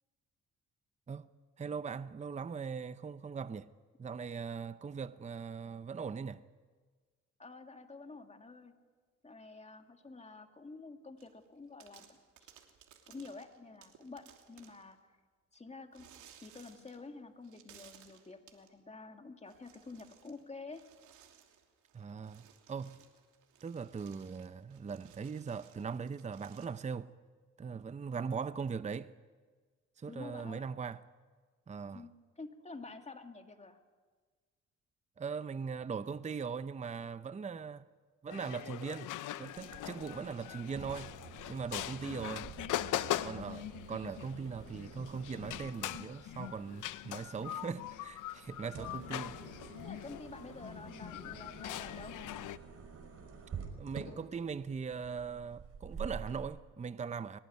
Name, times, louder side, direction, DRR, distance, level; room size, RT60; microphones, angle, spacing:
voice 1, 1.6-3.7 4.0-6.4 21.9-23.0 23.6-27.1 27.6-29.1 30.0-31.0 31.7-32.0 35.2-37.9 38.2-41.1 41.5-42.5 43.2-49.7 53.8-57.4, right 5 dB, 25° right, 0.7 m, -40 dB
voice 2, 7.4-8.7 9.2-12.5 13.1-15.2 15.5-16.1 16.4-20.8 30.1-30.7 31.9-33.8 43.1-43.4 48.8-49.0 49.8-52.2, left 3 dB, 20° left, 2.4 m, -49 dB
sound 1, 11.2-11.5 11.8-14.9 15.9-17.1 17.4-18.7 19.4-20.4 20.7-26.7, right 9 dB, 80° right, 3.0 m, -61 dB
sound 2, 38.3-52.6, left 13 dB, 80° left, 0.9 m, -41 dB
Car chair move, 39.6-56.4, right 6 dB, 50° right, 5.6 m, -49 dB
23.0 x 18.5 x 9.6 m
cardioid pair, 90°, 30 cm